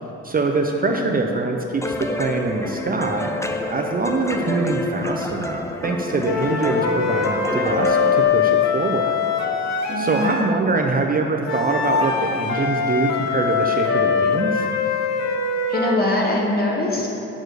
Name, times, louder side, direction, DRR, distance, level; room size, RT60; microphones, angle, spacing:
voice 1, 0.2-9.2 10.0-14.7, right 3 dB, 30° right, 2 dB, 0.6 m, -24 dB
voice 2, 0.8-1.1 9.9-10.3 15.7-17.1, left 2 dB, 30° left, -2 dB, 1.8 m, -23 dB
sound 1, 1.8-8.2, left 2 dB, 10° left, 0.6 m, -29 dB
sound 2, 6.2-10.5 11.4-16.1, left 5 dB, 65° left, 1.0 m, -22 dB
7.2 x 6.4 x 6.5 m, 2.9 s
cardioid pair, 90°, 30 cm